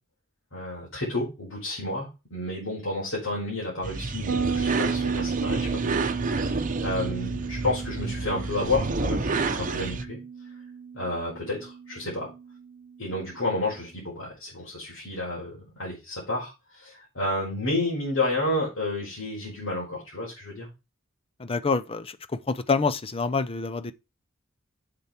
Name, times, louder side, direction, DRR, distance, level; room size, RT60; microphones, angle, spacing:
voice 1, 0.5-10.2 10.9-12.3 13.0-20.7, left 2 dB, 85° left, 5.1 m, -31 dB
sound 1, 3.8-10.0, right 3 dB, 40° right, 0.8 m, -29 dB
Bass guitar, 4.3-13.6, right 6 dB, 70° right, 0.9 m, -34 dB
voice 2, 21.4-22.2 22.5-23.9, left 4 dB, 30° left, 0.6 m, -26 dB
7.1 x 7.0 x 4.4 m
head